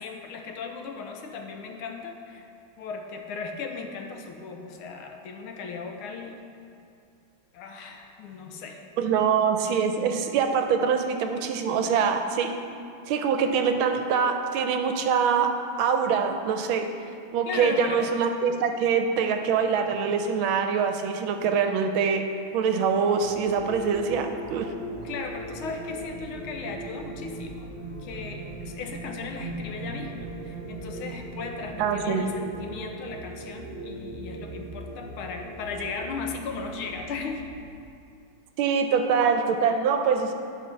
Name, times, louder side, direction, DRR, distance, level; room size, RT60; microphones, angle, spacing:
voice 1, 0.0-2.5 2.8-6.4 7.5-8.8 17.4-18.1 25.0-27.7 28.0-37.5, left 5 dB, 80° left, 4 dB, 1.6 m, -37 dB
voice 2, 9.0-12.5 13.1-15.5 15.8-16.8 17.3-22.3 22.5-24.7 31.8-32.3 38.6-40.3, right 6 dB, 80° right, 6 dB, 1.4 m, -24 dB
sound 1, 23.2-37.7, right 2 dB, 35° right, 0.7 m, -39 dB
11.0 x 4.2 x 5.6 m, 2.5 s
omnidirectional pair, 2.3 m